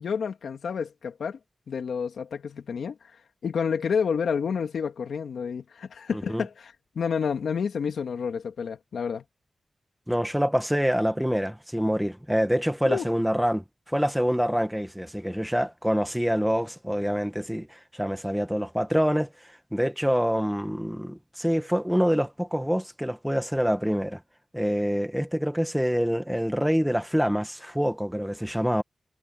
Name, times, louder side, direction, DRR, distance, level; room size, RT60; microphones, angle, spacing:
voice 1, 0.0-1.4 1.7-3.2 3.4-9.2 12.8-13.1, left 6 dB, 90° left, 2.4 m, -29 dB
voice 2, 6.1-6.4 10.1-19.3 19.7-24.2 24.5-28.8, equal, 5° right, 1.5 m, -26 dB
cardioid pair, 60°, 0 cm